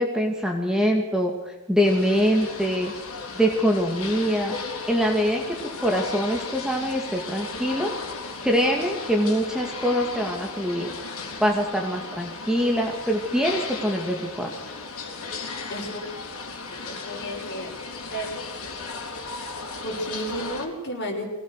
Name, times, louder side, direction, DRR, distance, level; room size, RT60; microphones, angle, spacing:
voice 1, 0.0-2.9 3.4-4.6 4.9-7.9 8.4-10.9 11.4-14.5, equal, 5° right, 1 dB, 2.4 m, -24 dB
sound 1, 1.8-20.6, left 4 dB, 65° left, 4.2 m, -36 dB
voice 2, 15.7-16.0 16.7-17.8 18.1-18.3 19.8-21.2, equal, 50° left, 1 dB, 6.4 m, -32 dB
23.0 x 19.0 x 6.6 m, 1.0 s
head